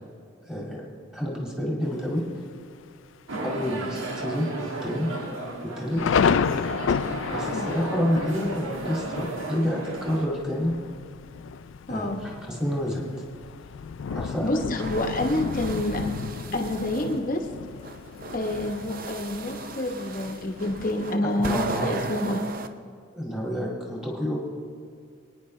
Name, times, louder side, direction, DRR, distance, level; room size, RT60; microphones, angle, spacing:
voice 1, 0.5-0.8 1.1-2.2 3.4-5.1 5.6-6.0 7.3-10.7 11.9-12.1 12.5-13.0 14.1-14.8 21.2-22.0 23.1-24.4, equal, 5° right, -3 dB, 2.2 m, -28 dB
Thunder, 1.8-2.4 2.9-3.0 3.3-3.7 4.1-4.2 4.9-21.1, left 6 dB, 75° left, 0.4 m, -32 dB
sound 1, 3.3-10.3, right 2 dB, 85° right, 1.4 m, -34 dB
voice 2, 11.9-12.2 14.4-16.0 16.5-17.4 18.3-22.4, left 1 dB, 40° left, 3 dB, 1.1 m, -28 dB
sound 2, 14.6-17.2 17.8-22.7, right 3 dB, 45° right, 0.6 m, -37 dB
24.5 x 9.8 x 3.2 m, 2.1 s
head